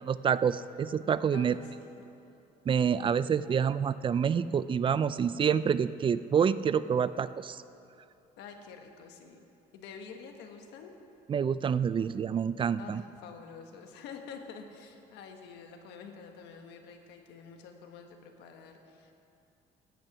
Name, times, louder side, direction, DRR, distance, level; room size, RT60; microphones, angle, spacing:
voice 1, 0.1-1.6 2.7-7.6 11.3-13.0, right 7 dB, 30° right, 16 dB, 0.3 m, -27 dB
voice 2, 1.3-2.1 8.4-9.4 9.7-10.9 12.8-19.1, left 5 dB, 90° left, 4 dB, 1.4 m, -48 dB
14.5 x 8.9 x 6.0 m, 2.7 s
cardioid pair, 110°, 17 cm